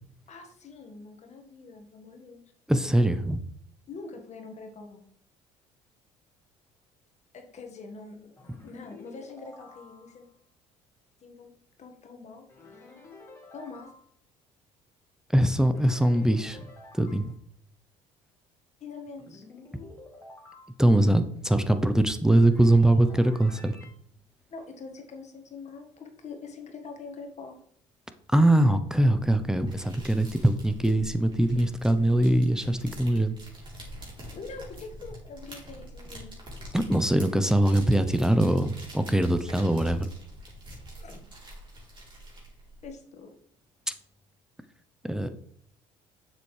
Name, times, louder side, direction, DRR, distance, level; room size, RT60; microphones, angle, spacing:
voice 1, 0.3-2.4 3.9-5.0 7.3-10.3 11.2-11.5 11.8-12.9 13.5-13.9 18.8-19.4 24.5-27.6 34.3-36.4 41.0-41.2 42.8-43.3, left 4 dB, 45° left, 4 dB, 1.6 m, -44 dB
voice 2, 2.7-3.4 15.3-16.7 16.9-17.3 20.8-23.8 28.3-33.3 36.7-40.1 45.0-45.3, right 1 dB, 5° right, 10 dB, 0.7 m, -22 dB
sound 1, 8.4-10.3 12.5-14.0 15.7-17.3 19.2-20.7 22.5-23.9, left 3 dB, 15° left, 2.8 m, -50 dB
sound 2, 29.3-42.9, right 1 dB, 30° right, 3.5 m, -45 dB
7.1 x 7.0 x 3.3 m, 0.63 s
hypercardioid pair, 70°, 16 cm